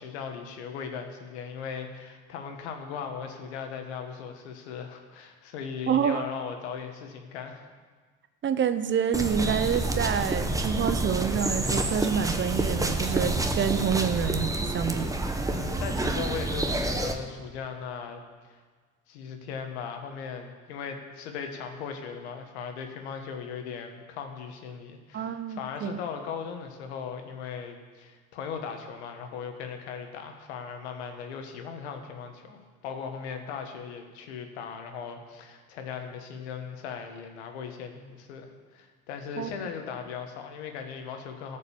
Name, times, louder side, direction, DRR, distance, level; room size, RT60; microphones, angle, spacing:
voice 1, 0.0-7.7 15.5-18.2 18.5-18.6 19.1-41.6, left 6 dB, 90° left, 5 dB, 1.4 m, -38 dB
voice 2, 5.9-6.3 8.4-15.1 25.1-26.0 39.4-39.5, right 8 dB, 35° right, 12 dB, 0.7 m, -27 dB
sound 1, 9.1-17.1, right 2 dB, 10° right, 1.0 m, -28 dB
14.0 x 5.4 x 7.0 m, 1.5 s
supercardioid pair, 85°, 32 cm